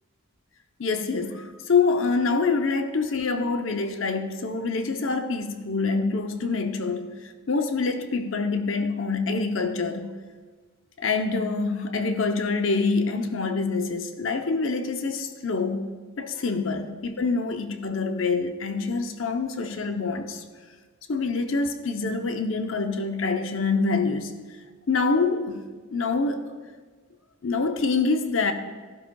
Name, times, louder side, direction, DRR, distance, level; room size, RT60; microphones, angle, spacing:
voice 1, 0.8-10.1 11.0-15.9 16.2-20.4 21.1-24.3 24.9-25.6 25.9-26.6 27.4-28.5, left 4 dB, 65° left, 0.7 m, -26 dB
13.0 x 11.5 x 2.3 m
head